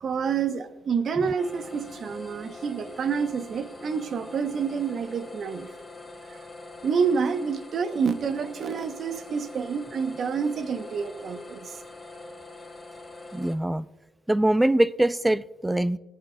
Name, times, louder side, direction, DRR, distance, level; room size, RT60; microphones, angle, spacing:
voice 1, 0.0-5.7 6.3-6.4 6.8-11.8, right 6 dB, 55° right, 0.9 m, -28 dB
sound 1, 1.4-13.5, left 2 dB, 5° left, 2.3 m, -44 dB
voice 2, 13.3-13.9 14.3-16.0, right 1 dB, 10° right, 0.4 m, -23 dB
18.0 x 11.0 x 2.3 m
cardioid pair, 90°, 0 cm